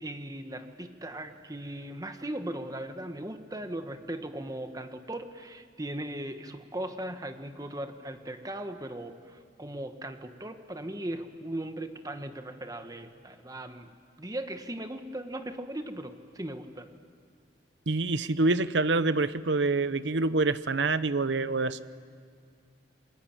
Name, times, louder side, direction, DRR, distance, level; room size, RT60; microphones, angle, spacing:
voice 1, 0.0-13.9 14.2-16.9, right 1 dB, 20° right, 7 dB, 1.4 m, -38 dB
voice 2, 17.9-21.8, right 3 dB, 85° right, 14 dB, 0.9 m, -26 dB
29.5 x 21.0 x 8.9 m, 2.2 s
head